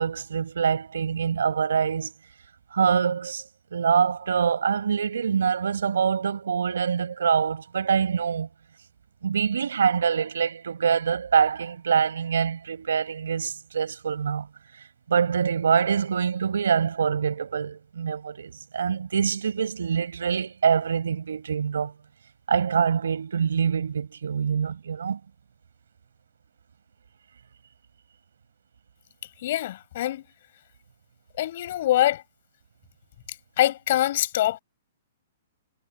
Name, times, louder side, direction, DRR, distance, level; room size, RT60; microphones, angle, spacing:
voice 1, 0.0-2.1 2.7-3.4 3.7-8.5 9.2-14.5 14.7-21.9 22.5-25.2, right 7 dB, 90° right, 5.4 m, -25 dB
voice 2, 29.4-30.2 31.4-32.2 33.6-34.6, left 13 dB, 55° left, 6.1 m, -24 dB
hypercardioid pair, 150°, 0 cm